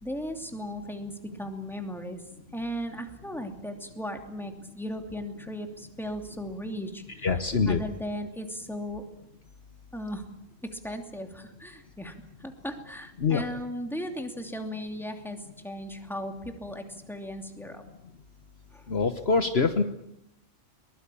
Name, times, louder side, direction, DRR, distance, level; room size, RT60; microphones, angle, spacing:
voice 1, 0.0-1.1 1.4-2.2 2.5-7.3 7.7-9.0 9.9-10.2 10.6-12.1 12.4-17.8 18.7-18.8, equal, ahead, 5 dB, 2.7 m, -36 dB
voice 2, 7.2-7.8 13.2-13.4 18.9-19.8, left 4 dB, 55° left, 8 dB, 1.4 m, -24 dB
22.5 x 21.0 x 8.5 m, 0.79 s
omnidirectional pair, 1.3 m